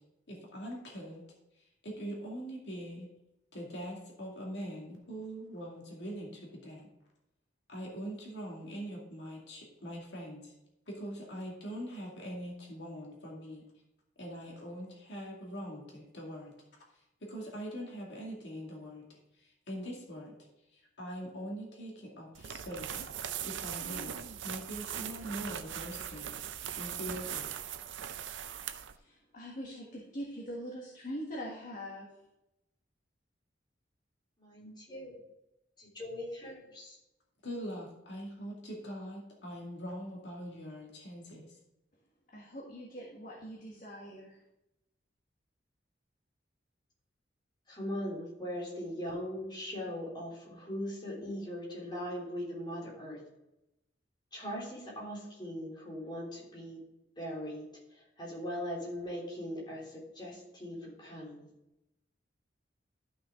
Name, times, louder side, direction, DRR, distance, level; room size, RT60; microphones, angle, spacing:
voice 1, 0.3-1.2 1.6-3.1 3.5-6.9 7.7-10.5 10.9-13.6 14.2-16.5 17.2-20.3 20.7-23.1 23.4-24.2 24.4-27.5 37.4-41.5, equal, 70° left, -2 dB, 2.3 m, -43 dB
sound 1, 22.3-29.0, right 9 dB, 90° right, 0.6 m, -40 dB
voice 2, 28.9-32.1 42.3-44.4, equal, 45° left, -3 dB, 1.7 m, -43 dB
voice 3, 34.4-35.2 35.8-37.0 47.7-53.2 54.3-56.8 57.2-61.5, equal, 25° left, -4 dB, 3.2 m, -40 dB
13.0 x 6.0 x 3.7 m, 0.89 s
head